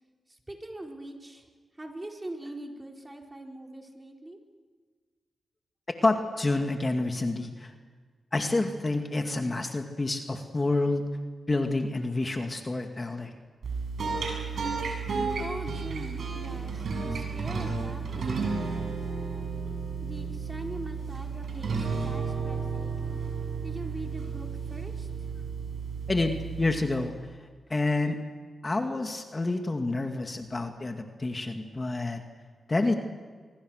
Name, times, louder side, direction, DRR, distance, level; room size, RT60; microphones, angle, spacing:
voice 1, 0.5-1.4 1.8-4.4 15.4-19.3 20.0-23.2 23.6-25.3, right 1 dB, 20° right, 1 dB, 4.7 m, -42 dB
voice 2, 6.0-7.7 8.3-11.0 11.5-13.3 26.1-27.1 27.7-28.2 28.6-32.2 32.7-32.9, left 2 dB, 30° left, 4 dB, 2.2 m, -28 dB
sound 1, 13.6-27.2, right 5 dB, 70° right, 7.8 m, -33 dB
24.5 x 24.5 x 6.5 m, 1.5 s
cardioid pair, 55°, 0 cm